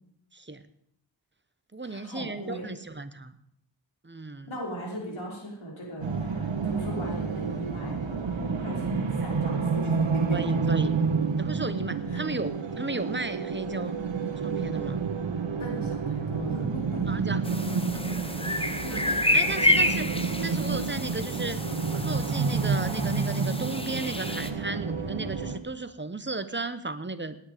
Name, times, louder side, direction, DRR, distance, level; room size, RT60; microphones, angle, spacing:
voice 1, 0.3-0.7 1.7-3.4 4.0-4.5 9.2-9.3 10.3-10.9 11.4-14.0 14.4-15.1 17.1-17.4 17.9-18.0 18.9-19.1 19.3-20.1 20.4-21.6 21.9-27.4, right 3 dB, 25° right, 12 dB, 1.0 m, -34 dB
voice 2, 1.8-2.8 4.5-10.9 12.1-12.2 15.6-17.2 18.4-19.5, equal, 75° left, -3 dB, 5.4 m, -39 dB
sound 1, 6.0-25.6, right 5 dB, 65° right, 1.5 m, -29 dB
sound 2, 11.2-16.0, right 8 dB, 85° right, 0.9 m, -39 dB
sound 3, 17.4-24.5, left 1 dB, 10° left, 1.1 m, -29 dB
18.5 x 9.8 x 5.1 m, 0.72 s
wide cardioid pair, 80°, 48 cm